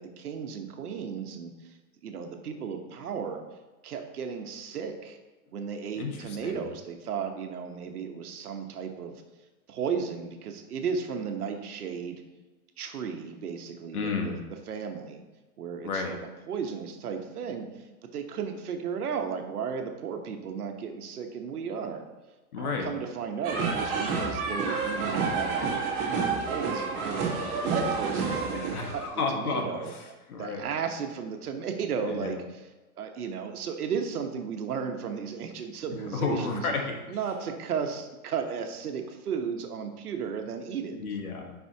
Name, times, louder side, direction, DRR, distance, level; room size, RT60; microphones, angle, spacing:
voice 1, 0.0-1.7 2.0-3.4 3.8-5.2 5.5-9.2 9.7-12.2 12.8-14.3 14.7-15.2 15.6-16.2 16.5-22.0 22.6-27.3 27.6-29.0 29.3-29.9 30.4-32.6 33.0-36.7 37.1-41.0, right 6 dB, 80° right, 5 dB, 1.1 m, -34 dB
voice 2, 5.9-6.6 13.9-14.4 15.8-16.1 22.5-22.9 28.7-30.7 32.1-32.4 36.1-37.0 40.9-41.5, left 4 dB, 75° left, 2 dB, 1.6 m, -32 dB
sound 1, 23.4-29.1, right 4 dB, 35° right, 1.6 m, -29 dB
7.9 x 5.4 x 2.8 m, 1.2 s
hypercardioid pair, 170°, 44 cm